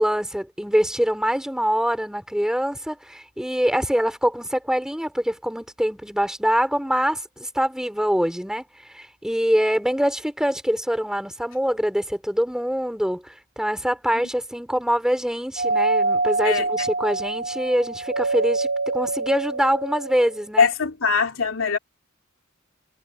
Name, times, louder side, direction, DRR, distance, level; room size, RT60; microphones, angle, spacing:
voice 1, 0.0-8.6 8.9-20.7, equal, 5° right, 3.9 m, -24 dB
Doorbell, 15.6-20.4, right 3 dB, 50° right, 0.9 m, -25 dB
voice 2, 20.6-21.8, left 5 dB, 75° left, 3.1 m, -21 dB
head